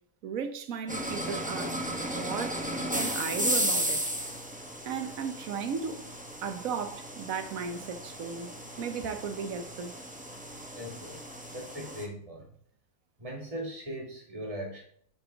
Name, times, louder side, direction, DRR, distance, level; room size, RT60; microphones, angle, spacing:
voice 1, 0.2-4.3 4.8-6.0 6.4-9.9, right 6 dB, 65° right, 1.2 m, -36 dB
sound 1, 0.9-12.1, equal, 5° right, 0.8 m, -35 dB
voice 2, 10.7-12.5 13.2-14.8, equal, 20° right, 1.7 m, -39 dB
8.8 x 5.5 x 3.5 m
omnidirectional pair, 1.7 m